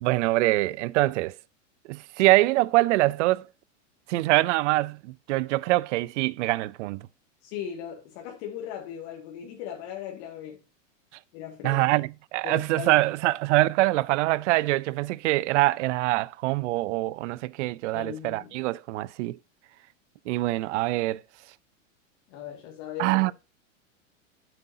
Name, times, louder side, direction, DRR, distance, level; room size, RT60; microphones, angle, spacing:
voice 1, 0.0-1.4 1.9-3.4 4.1-7.0 11.6-19.4 20.3-21.2 23.0-23.3, right 19 dB, 65° right, 0.6 m, -24 dB
voice 2, 7.4-10.6 11.3-11.9 12.4-13.0 17.9-18.5 22.3-23.3, left 9 dB, 55° left, 2.1 m, -38 dB
9.1 x 8.0 x 2.7 m
supercardioid pair, 130°, 39 cm